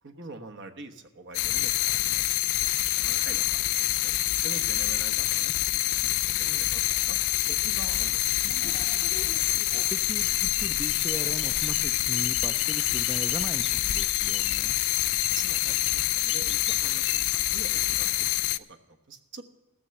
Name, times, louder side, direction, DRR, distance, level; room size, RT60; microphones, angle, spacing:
voice 1, 0.0-4.1 4.4-7.2 7.5-8.4 15.3-19.4, right 3 dB, 55° right, 6 dB, 1.2 m, -45 dB
sound 1, 1.3-18.6, left 16 dB, 85° left, 0.4 m, -26 dB
sound 2, 8.4-17.2, left 4 dB, 25° left, 0.7 m, -42 dB
voice 2, 9.9-14.8, right 1 dB, 10° right, 7 dB, 0.5 m, -38 dB
16.0 x 7.0 x 7.6 m, 1.1 s
head